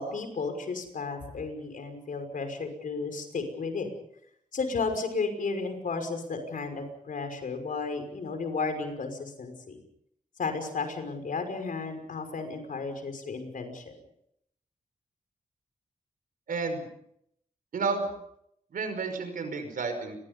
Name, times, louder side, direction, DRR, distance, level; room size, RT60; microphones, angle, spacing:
voice 1, 0.0-3.9 4.5-9.8 10.4-13.9, left 4 dB, 75° left, 6 dB, 5.8 m, -33 dB
voice 2, 16.5-16.9 17.7-18.1 18.7-20.2, right 4 dB, 85° right, 8 dB, 5.5 m, -31 dB
30.0 x 22.0 x 5.5 m, 0.74 s
wide cardioid pair, 105°, 14 cm